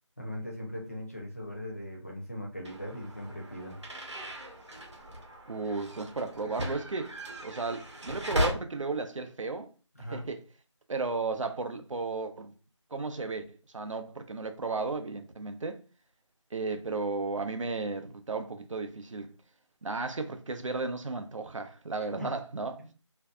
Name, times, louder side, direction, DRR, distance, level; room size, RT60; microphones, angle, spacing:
voice 1, 0.2-3.8 10.0-10.3 22.2-22.3 22.8-22.9, left 1 dB, 30° left, 0.6 m, -39 dB
sound 1, 2.6-8.5, equal, 65° right, 0.8 m, -37 dB
voice 2, 5.5-7.1 7.4-9.7 10.1-10.4 10.9-12.5 12.9-15.8 16.5-19.3 19.8-22.8, right 3 dB, 90° right, 0.5 m, -34 dB
2.6 x 2.2 x 2.3 m
figure-of-eight pair, 175°, 16 cm